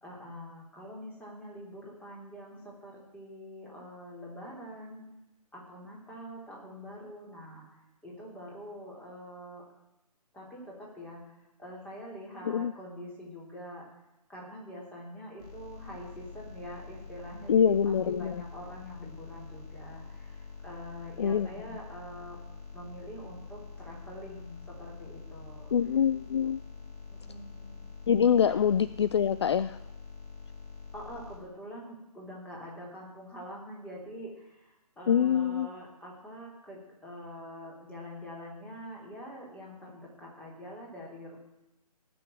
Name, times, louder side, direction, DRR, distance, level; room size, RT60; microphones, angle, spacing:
voice 1, 0.0-5.0 5.5-7.7 8.0-9.6 10.3-13.8 14.3-22.4 22.7-25.7 27.1-27.8 28.5-28.6 30.9-41.4, equal, 5° left, -3 dB, 3.1 m, -45 dB
sound 1, 15.4-31.4, left 4 dB, 70° left, 4.1 m, -46 dB
voice 2, 17.5-18.4 21.2-21.5 25.7-26.6 28.1-29.8 35.1-35.7, left 8 dB, 45° left, 14 dB, 0.4 m, -25 dB
17.5 x 6.2 x 9.0 m, 0.97 s
figure-of-eight pair, 140°, 20 cm